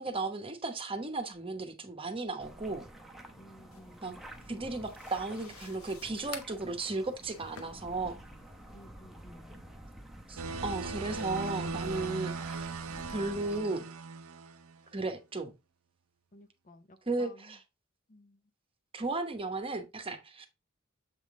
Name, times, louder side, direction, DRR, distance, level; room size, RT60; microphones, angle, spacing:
voice 1, 0.0-2.9 4.0-4.1 4.5-8.2 10.3-12.8 13.1-13.9 14.9-15.5 17.1-17.6 18.9-20.5, right 3 dB, 25° right, 0.9 m, -35 dB
sound 1, 2.4-13.6, right 1 dB, ahead, 0.8 m, -49 dB
voice 2, 3.4-4.2 8.7-9.6 16.3-17.6 18.1-18.4, left 1 dB, 40° left, 0.6 m, -55 dB
sound 2, 3.7-8.9, left 6 dB, 85° left, 0.9 m, -51 dB
sound 3, 10.4-14.8, right 4 dB, 80° right, 0.6 m, -39 dB
7.5 x 3.6 x 3.6 m
head